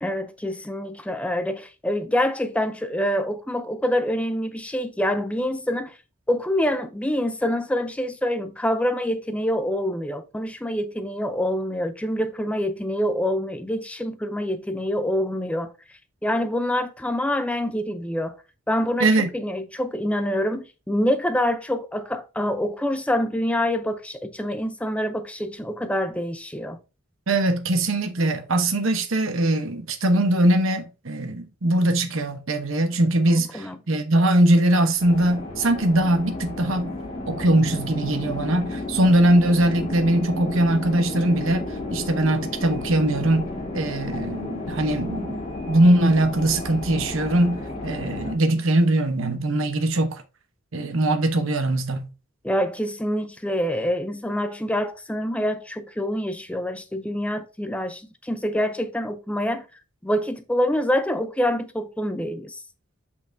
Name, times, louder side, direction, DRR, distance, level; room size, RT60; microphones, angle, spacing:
voice 1, 0.0-5.9 6.3-15.7 16.2-18.4 18.7-26.8 33.3-33.8 52.4-59.7 60.0-62.6, equal, 5° left, 0.5 m, -26 dB
voice 2, 27.3-36.9 37.3-41.6 41.9-43.5 43.7-45.4 45.7-50.2 50.7-52.1, right 1 dB, 65° right, 0.9 m, -21 dB
sound 1, 35.0-48.3, left 2 dB, 25° left, 2.0 m, -33 dB
6.4 x 5.7 x 2.6 m
head